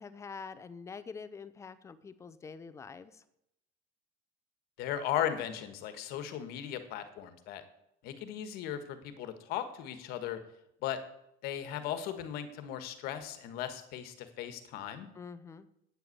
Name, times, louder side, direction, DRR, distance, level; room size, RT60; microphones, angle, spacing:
voice 1, 0.0-3.2 15.2-15.7, left 5 dB, 15° left, 14 dB, 0.5 m, -46 dB
voice 2, 4.8-7.6 8.0-10.4 10.8-11.0 11.4-15.1, left 10 dB, 55° left, 10 dB, 1.4 m, -37 dB
8.8 x 8.0 x 8.5 m, 0.80 s
cardioid pair, 180°, 20 cm